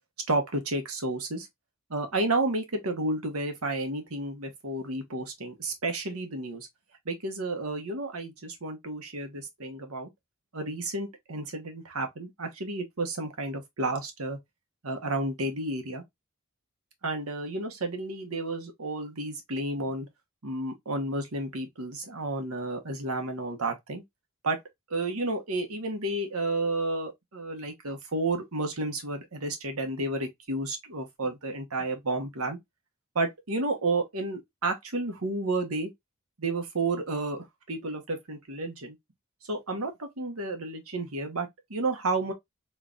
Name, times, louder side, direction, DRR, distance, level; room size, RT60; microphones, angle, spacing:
voice 1, 0.3-1.5 1.9-6.7 7.0-10.1 10.5-14.4 14.8-16.0 17.0-20.1 20.4-24.0 24.4-24.6 24.9-32.6 33.1-35.9 36.4-38.9 39.5-42.3, right 2 dB, 85° right, 1.3 m, -31 dB
3.7 x 3.3 x 2.5 m
head